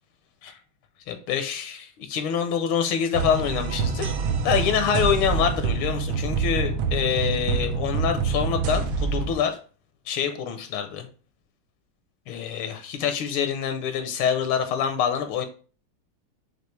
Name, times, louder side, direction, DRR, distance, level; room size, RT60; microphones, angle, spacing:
voice 1, 1.1-4.1 4.4-9.6 10.1-11.1 12.3-15.5, left 8 dB, 80° left, 7 dB, 1.4 m, -26 dB
sound 1, 3.1-9.3, right 5 dB, 85° right, 1.5 m, -26 dB
6.1 x 2.7 x 3.2 m, 0.39 s
omnidirectional pair, 2.3 m